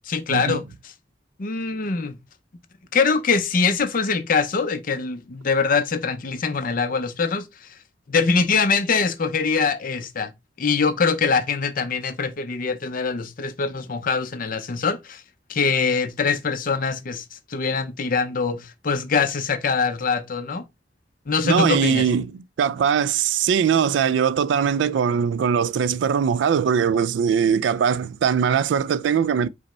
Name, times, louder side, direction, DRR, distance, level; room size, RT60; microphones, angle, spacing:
voice 1, 0.1-0.9 1.4-2.1 2.9-7.5 8.1-10.3 10.6-15.2 15.5-17.2 17.5-20.6 21.3-22.1, left 5 dB, 50° left, 0.6 m, -23 dB
voice 2, 21.4-29.5, right 7 dB, 75° right, 0.3 m, -21 dB
5.1 x 2.1 x 4.2 m
head